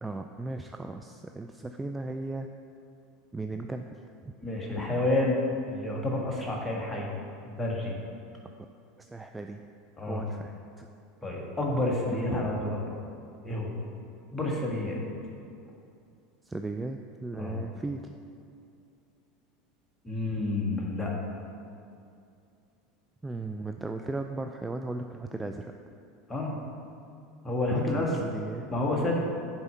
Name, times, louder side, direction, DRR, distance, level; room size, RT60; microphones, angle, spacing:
voice 1, 0.0-2.5 3.3-3.9 4.2-4.3 9.0-9.6 10.0-10.9 16.4-18.0 23.2-25.7 27.7-28.7, right 2 dB, 10° right, 5 dB, 0.3 m, -36 dB
voice 2, 4.4-5.4 5.7-7.1 7.4-7.9 10.0-10.2 11.2-12.9 13.4-13.8 14.3-15.0 17.4-17.6 20.0-21.1 26.3-26.5 27.4-28.2 28.7-29.3, left 2 dB, 15° left, -2 dB, 1.6 m, -29 dB
6.8 x 4.5 x 5.6 m, 2.5 s
hypercardioid pair, 85°, 0 cm